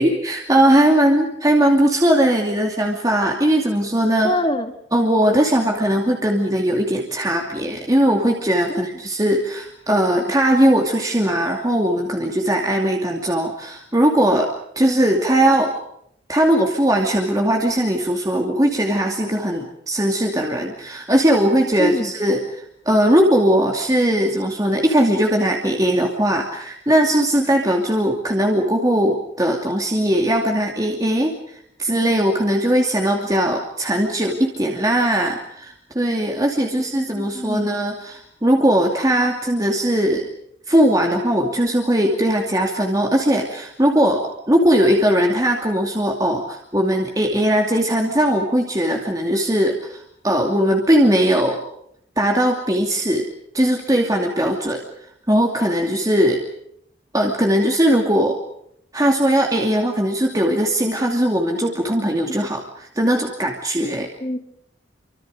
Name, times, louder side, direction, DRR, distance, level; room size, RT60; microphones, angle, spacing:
voice 1, 0.0-4.3 4.9-14.5 14.8-15.7 16.3-40.3 40.7-51.6 52.2-53.3 53.5-54.8 55.3-56.4 57.1-58.4 58.9-64.1, right 1 dB, 20° right, 1 dB, 2.6 m, -19 dB
voice 2, 4.2-4.7 8.7-8.9 21.8-22.1 36.7-37.7 64.2-64.4, left 1 dB, 30° left, 7 dB, 2.3 m, -25 dB
29.0 x 25.5 x 5.2 m, 0.73 s
head